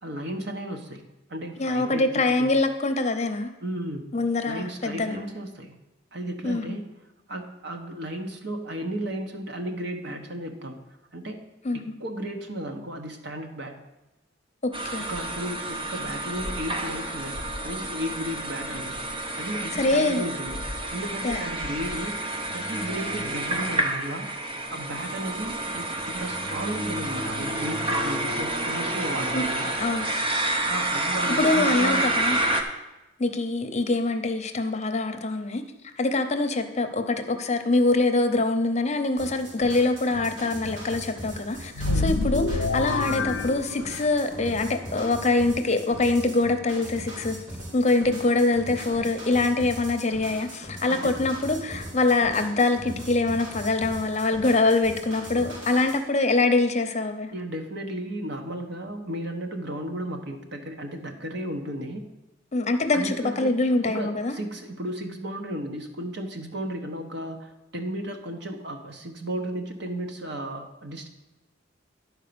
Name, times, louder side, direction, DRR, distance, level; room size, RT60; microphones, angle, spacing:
voice 1, 0.0-1.0 1.3-2.5 3.6-4.1 4.5-5.8 6.1-7.0 7.3-10.8 11.1-11.4 11.7-13.8 15.0-17.4 17.6-19.0 19.4-20.6 20.9-22.2 22.5-24.3 24.7-29.7 30.7-32.1 41.8-42.2 50.9-51.1 57.3-62.1 62.9-63.6 63.8-71.1, right 1 dB, 60° right, 4 dB, 1.2 m, -34 dB
voice 2, 1.6-3.5 4.1-5.2 6.4-6.8 11.6-11.8 14.6-15.1 19.7-20.2 21.2-21.4 29.3-29.5 29.8-30.1 31.3-32.4 33.2-35.6 36.0-47.4 47.7-57.3 62.5-64.3, left 2 dB, 35° left, 7 dB, 0.7 m, -24 dB
sound 1, 14.7-32.6, right 1 dB, 25° right, 0.9 m, -29 dB
sound 2, 39.2-56.0, equal, 85° right, 3.1 m, -40 dB
sound 3, 41.7-44.3, left 3 dB, 80° left, 0.4 m, -27 dB
11.0 x 4.6 x 6.9 m, 1.0 s
head